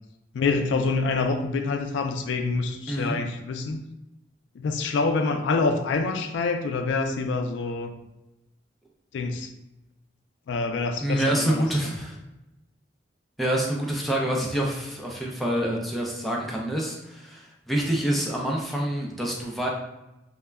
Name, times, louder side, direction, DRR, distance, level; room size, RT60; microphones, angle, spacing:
voice 1, 0.3-3.8 4.5-7.9 9.1-9.5 10.5-11.6, left 3 dB, 70° left, 6 dB, 0.3 m, -26 dB
voice 2, 2.9-3.2 11.0-12.2 13.4-19.7, right 1 dB, ahead, -2 dB, 0.4 m, -27 dB
2.1 x 2.1 x 3.4 m, 0.94 s
head